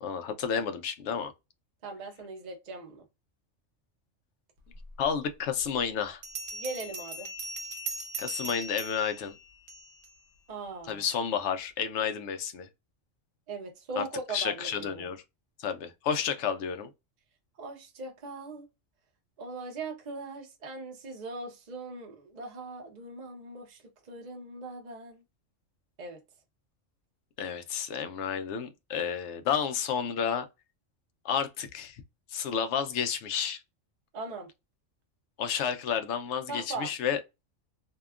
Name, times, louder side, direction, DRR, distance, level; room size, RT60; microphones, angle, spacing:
voice 1, 0.0-1.3 5.0-6.2 8.2-9.3 10.9-12.7 14.0-14.1 14.3-15.2 15.6-16.9 27.4-30.4 31.2-32.0 32.3-33.6 35.4-37.2, left 7 dB, 70° left, 0.8 m, -31 dB
voice 2, 1.8-3.0 6.5-7.3 10.5-11.0 13.5-15.1 17.6-18.7 19.4-23.8 24.1-25.2 26.0-26.2 34.1-34.5 36.5-36.9, right 3 dB, 40° right, 0.7 m, -40 dB
Bell, 5.0-5.1 6.2-10.1, right 2 dB, 65° right, 1.0 m, -39 dB
2.7 x 2.2 x 2.2 m
omnidirectional pair, 1.3 m